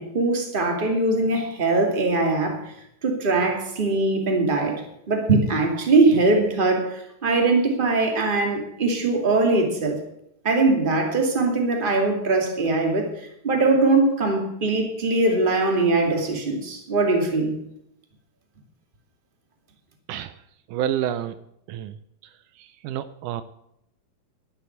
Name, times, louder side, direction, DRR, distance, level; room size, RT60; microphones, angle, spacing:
voice 1, 0.0-2.7 3.0-10.0 10.4-13.1 13.4-17.6, right 3 dB, 20° right, 2 dB, 2.1 m, -21 dB
voice 2, 20.7-21.3 21.7-21.9 22.8-23.4, right 10 dB, 80° right, 13 dB, 2.1 m, -28 dB
11.5 x 8.8 x 8.0 m, 0.79 s
omnidirectional pair, 3.7 m